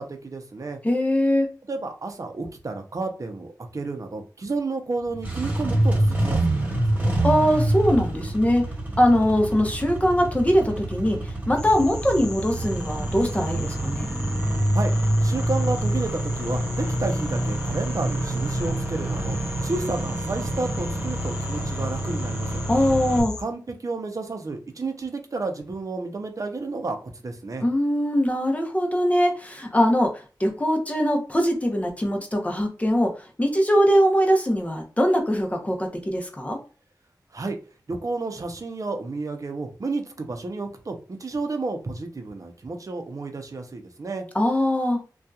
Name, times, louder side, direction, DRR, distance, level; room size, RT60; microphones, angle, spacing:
voice 1, 0.0-0.8 1.7-7.1 14.7-14.9 15.2-19.4 19.6-22.6 23.4-27.6 37.3-37.6 37.9-44.2, right 3 dB, 50° right, 5 dB, 0.6 m, -31 dB
voice 2, 0.8-1.5 7.2-8.7 9.0-14.1 22.7-23.3 27.6-36.6 44.3-45.0, equal, 20° left, 2 dB, 0.7 m, -22 dB
Engine starting, 5.1-23.2, right 1 dB, 25° right, 1.3 m, -26 dB
sound 1, 11.6-23.4, left 2 dB, 55° left, 0.5 m, -38 dB
2.7 x 2.3 x 2.3 m, 0.36 s
wide cardioid pair, 65°, 7 cm